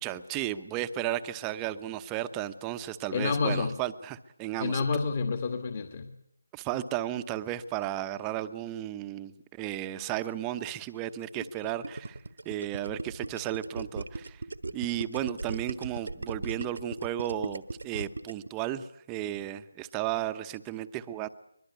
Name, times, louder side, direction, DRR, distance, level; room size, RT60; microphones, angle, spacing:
voice 1, 0.0-4.9 6.5-12.2 12.4-14.4 14.7-21.3, right 12 dB, 15° right, 11 dB, 0.9 m, -34 dB
voice 2, 3.1-3.8 4.6-6.1, left 4 dB, 35° left, 6 dB, 1.9 m, -29 dB
Gurgling, 11.4-18.5, right 3 dB, 70° right, 1.3 m, -37 dB
23.5 x 22.0 x 8.3 m, 0.77 s
figure-of-eight pair, 160°, 0 cm